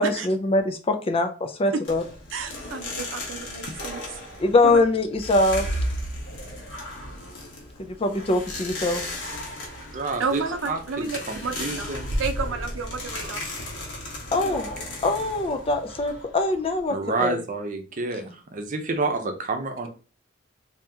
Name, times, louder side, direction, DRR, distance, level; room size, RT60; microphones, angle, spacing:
voice 1, 0.0-2.0 4.4-5.7 7.8-9.0 14.3-14.7 15.0-17.4, left 2 dB, 30° left, 7 dB, 0.4 m, -23 dB
sound 1, 1.8-16.9, left 1 dB, 65° left, 1.2 m, -34 dB
voice 2, 2.3-4.2 10.2-11.9 12.2-13.4, right 4 dB, 85° right, 7 dB, 0.6 m, -31 dB
voice 3, 9.9-12.1 16.9-19.9, right 3 dB, 40° right, 5 dB, 0.7 m, -29 dB
2.8 x 2.8 x 3.4 m, 0.35 s
head